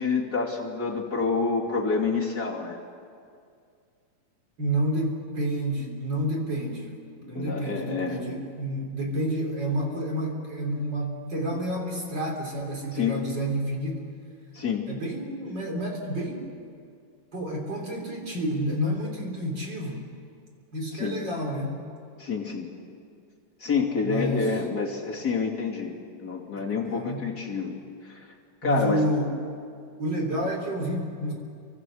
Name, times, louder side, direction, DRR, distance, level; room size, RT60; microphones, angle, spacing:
voice 1, 0.0-2.8 7.3-8.2 12.9-13.2 14.5-14.9 20.9-21.2 22.2-22.7 23.6-25.9 26.2-27.7 28.0-28.2 28.6-29.0, left 5 dB, 30° left, -2 dB, 2.9 m, -28 dB
voice 2, 4.6-6.9 7.3-14.1 14.9-16.5 17.3-20.1 20.7-21.8 24.0-24.5 26.6-27.2 28.6-29.3 30.0-31.3, right 1 dB, 35° right, 0 dB, 4.0 m, -29 dB
29.0 x 24.0 x 6.4 m, 2.3 s
omnidirectional pair, 3.8 m